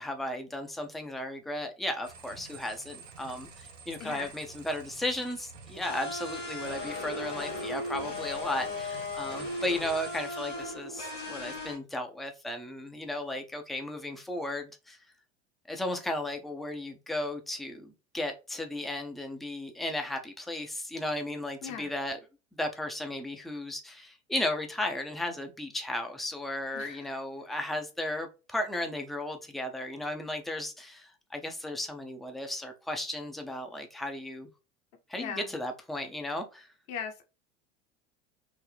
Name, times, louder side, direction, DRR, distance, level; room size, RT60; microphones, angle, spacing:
voice 1, 0.0-15.0 15.7-22.2 22.5-34.5 35.1-36.7, left 1 dB, ahead, 0.4 m, -35 dB
sound 1, 2.0-10.2, right 5 dB, 90° right, 0.8 m, -49 dB
voice 2, 4.0-4.3 21.6-21.9 26.7-27.1 35.1-35.5 36.9-37.2, left 7 dB, 50° left, 0.9 m, -39 dB
sound 2, 5.8-11.8, left 2 dB, 90° left, 1.5 m, -37 dB
3.8 x 2.0 x 3.3 m
hypercardioid pair, 85°, 36 cm